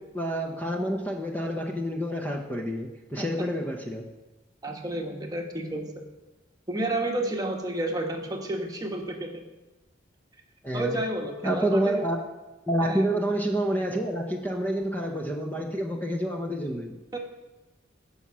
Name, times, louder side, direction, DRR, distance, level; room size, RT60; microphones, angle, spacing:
voice 1, 0.0-4.1 10.6-11.0 11.4-12.2 12.7-17.0, right 1 dB, 10° left, 0 dB, 0.9 m, -28 dB
voice 2, 3.2-3.5 4.6-6.0 6.7-9.4 10.7-12.0 12.8-13.1 17.1-17.2, right 1 dB, 20° right, 2 dB, 1.2 m, -31 dB
15.5 x 5.7 x 6.2 m, 1.1 s
head